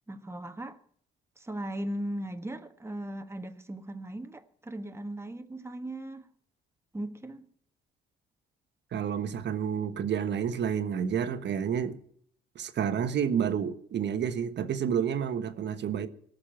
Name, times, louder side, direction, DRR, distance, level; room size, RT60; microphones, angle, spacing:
voice 1, 0.1-0.8 1.4-6.3 6.9-7.5, right 1 dB, 15° right, 1.4 m, -38 dB
voice 2, 8.9-12.0 12.5-16.1, right 8 dB, 60° right, 1.3 m, -29 dB
18.5 x 6.7 x 9.0 m
cardioid pair, 90°, 20 cm